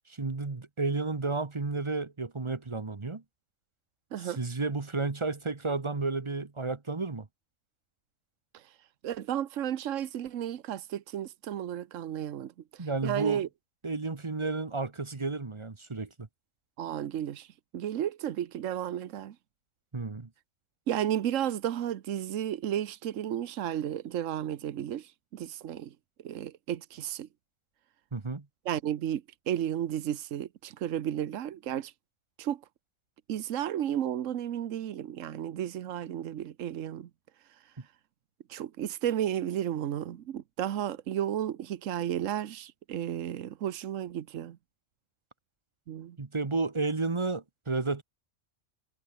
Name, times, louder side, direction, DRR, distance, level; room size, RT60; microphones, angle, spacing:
voice 1, 0.2-3.2 4.2-7.3 12.8-13.4 13.8-16.3 19.9-20.3 28.1-28.5 46.2-48.0, right 3 dB, 25° right, 1.1 m, -32 dB
voice 2, 9.0-13.5 16.8-17.5 17.7-19.3 20.9-25.9 26.2-27.3 28.6-31.9 32.4-32.6 33.3-37.1 38.5-44.6 45.9-46.2, right 10 dB, 80° right, 1.2 m, -33 dB
omnidirectional pair, 1.3 m